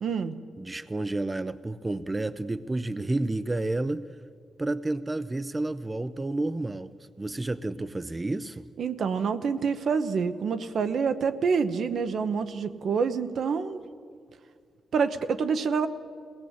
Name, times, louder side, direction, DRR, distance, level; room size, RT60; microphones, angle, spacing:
voice 1, 0.0-0.3 8.8-13.8 14.9-15.9, right 5 dB, 65° right, 10 dB, 1.0 m, -27 dB
voice 2, 0.6-4.0 4.6-6.9 7.2-8.7, right 2 dB, 20° right, 13 dB, 0.5 m, -30 dB
22.0 x 18.5 x 8.3 m, 2.1 s
wide cardioid pair, 120°, 0 cm